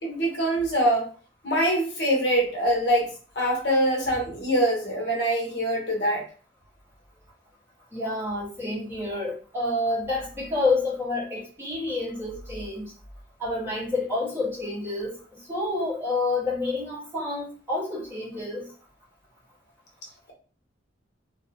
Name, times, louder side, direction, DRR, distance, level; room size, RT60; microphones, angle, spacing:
voice 1, 0.0-1.1 1.4-6.2, right 1 dB, 65° left, 0 dB, 1.0 m, -24 dB
voice 2, 7.9-12.9 13.4-18.7, left 2 dB, 15° right, -7 dB, 1.3 m, -29 dB
3.0 x 2.6 x 2.7 m, 0.39 s
head